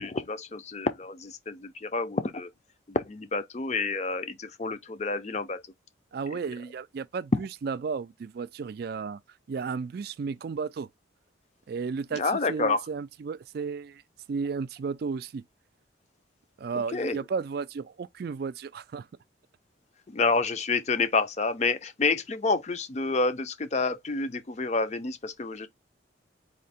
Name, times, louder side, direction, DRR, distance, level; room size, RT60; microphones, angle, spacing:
voice 1, 0.0-2.5 2.9-5.6 6.3-6.4 12.1-12.8 16.9-17.2 20.1-25.7, left 3 dB, 35° left, 0.5 m, -28 dB
voice 2, 6.1-9.2 9.5-10.9 11.7-12.2 12.5-14.0 14.3-15.4 16.6-19.1, right 5 dB, 50° right, 0.3 m, -33 dB
4.3 x 2.8 x 4.2 m
head